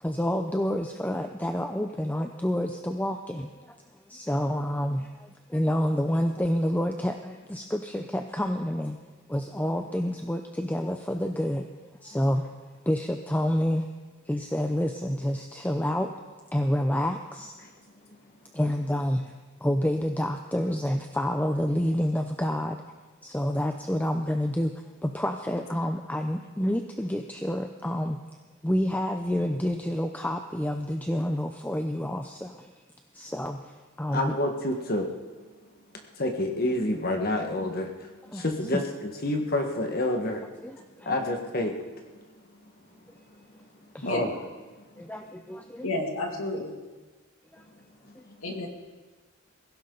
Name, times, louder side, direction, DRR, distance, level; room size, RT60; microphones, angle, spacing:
voice 1, 0.0-9.0 9.3-11.7 12.0-12.4 12.9-13.9 14.3-16.1 16.5-17.5 18.5-19.3 19.6-22.8 23.2-24.7 25.0-28.2 28.6-32.7 33.1-34.4 38.3-38.4 38.7-38.8 40.6-41.1 43.9-44.1 45.0-45.9 47.5-47.7 48.1-48.2, equal, 10° left, 5 dB, 0.6 m, -28 dB
voice 2, 34.1-35.1 36.1-40.5 41.0-41.8 42.1-42.2 44.0-44.3 44.9-45.0 48.1-48.4, left 1 dB, 45° left, 3 dB, 1.6 m, -29 dB
voice 3, 44.0-44.4 45.8-46.7 48.4-48.7, left 2 dB, 80° left, 2 dB, 2.6 m, -31 dB
22.5 x 16.0 x 4.0 m, 1.3 s
head